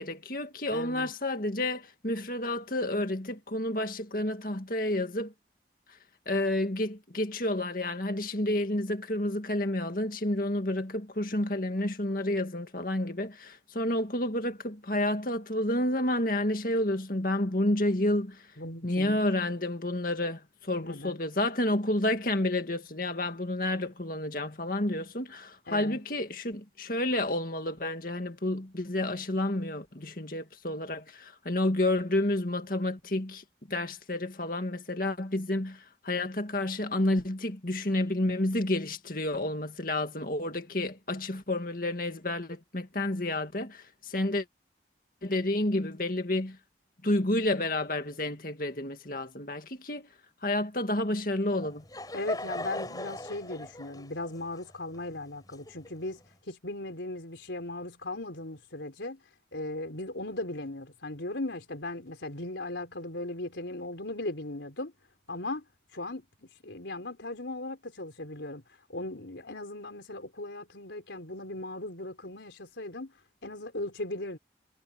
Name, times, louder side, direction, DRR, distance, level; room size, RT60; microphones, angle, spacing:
voice 1, 0.0-5.3 6.3-18.4 18.8-44.5 45.2-46.6 47.0-50.1 50.4-51.8, left 1 dB, 50° left, 2.2 m, -30 dB
voice 2, 0.7-1.1 18.6-19.2 20.8-21.2 25.7-26.0 52.1-59.2 59.5-64.9 65.3-65.6 65.9-68.6 68.9-73.1 73.4-74.4, left 2 dB, 85° left, 4.1 m, -38 dB
Laughter / Crowd, 51.5-56.2, left 1 dB, 20° left, 5.0 m, -39 dB
head